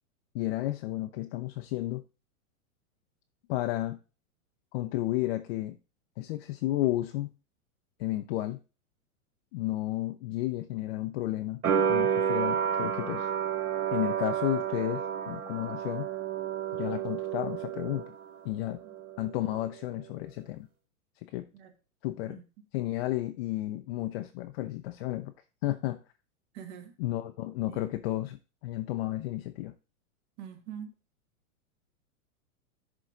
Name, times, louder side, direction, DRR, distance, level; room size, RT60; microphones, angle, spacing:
voice 1, 0.3-2.0 3.5-4.0 4.7-5.8 6.2-7.3 8.0-8.6 9.5-11.6 11.9-13.3 13.9-16.1 16.7-18.1 18.4-18.8 19.2-20.7 21.2-21.5 22.0-22.4 22.7-25.3 25.6-26.0 27.0-29.7, left 15 dB, 45° left, 0.6 m, -32 dB
sound 1, 11.6-18.4 18.7-19.6, right 8 dB, 80° right, 3.3 m, -30 dB
voice 2, 26.5-26.9 27.7-27.8 30.4-30.9, right 8 dB, 50° right, 1.7 m, -43 dB
11.0 x 3.7 x 3.8 m
hypercardioid pair, 135°, 44 cm